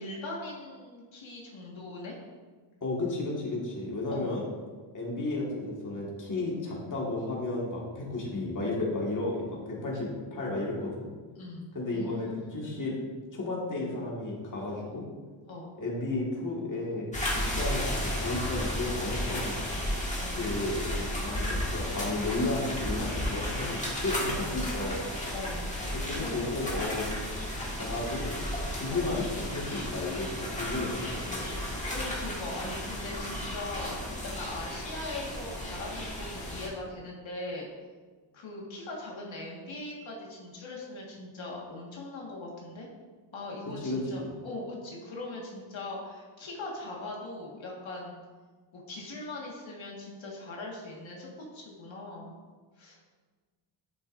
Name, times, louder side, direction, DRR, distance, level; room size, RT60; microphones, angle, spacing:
voice 1, 0.0-2.2 4.1-4.4 11.4-12.6 15.5-15.8 20.2-20.4 25.3-25.7 26.0-26.6 28.9-29.1 31.9-37.7 38.3-42.9 43.3-48.2 48.7-51.3 51.5-52.3 52.8-53.0, left 2 dB, 65° left, -3 dB, 1.7 m, -40 dB
voice 2, 2.8-4.5 4.9-11.1 11.7-13.0 13.3-15.0 15.8-19.6 20.4-25.1 25.9-27.1 27.7-28.4 28.8-31.6 43.7-44.3, left 2 dB, 40° left, -4 dB, 1.7 m, -33 dB
sound 1, 17.1-36.7, left 1 dB, 15° left, 1.6 m, -34 dB
10.5 x 8.1 x 2.6 m, 1.4 s
wide cardioid pair, 170°, 49 cm